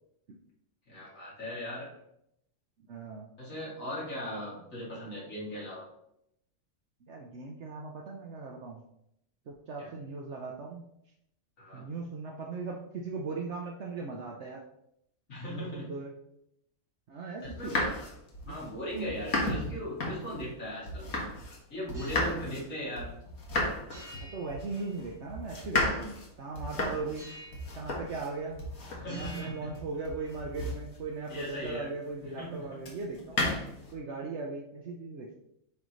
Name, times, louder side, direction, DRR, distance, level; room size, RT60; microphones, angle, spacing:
voice 1, 0.9-1.9 3.4-5.9 9.8-9.9 11.6-11.9 15.3-15.9 17.4-17.8 18.4-21.1 21.7-23.1 29.0-29.7 31.3-31.9 32.2-32.8, equal, 70° left, -7 dB, 3.0 m, -38 dB
voice 2, 2.9-3.2 7.1-8.8 9.5-10.9 11.7-14.6 15.5-16.1 17.1-17.8 18.5-18.6 24.3-27.3 27.7-28.6 29.1-33.5 33.9-35.3, right 4 dB, 60° right, 0 dB, 1.0 m, -38 dB
sound 1, 17.4-21.6 21.9-31.8 32.8-33.9, left 2 dB, 85° left, 1.8 m, -34 dB
sound 2, 21.9-22.4 23.9-25.4 27.1-27.8 28.1-28.7 29.0-30.4, left 1 dB, 25° right, 1.7 m, -50 dB
9.1 x 3.9 x 3.1 m, 0.77 s
omnidirectional pair, 1.4 m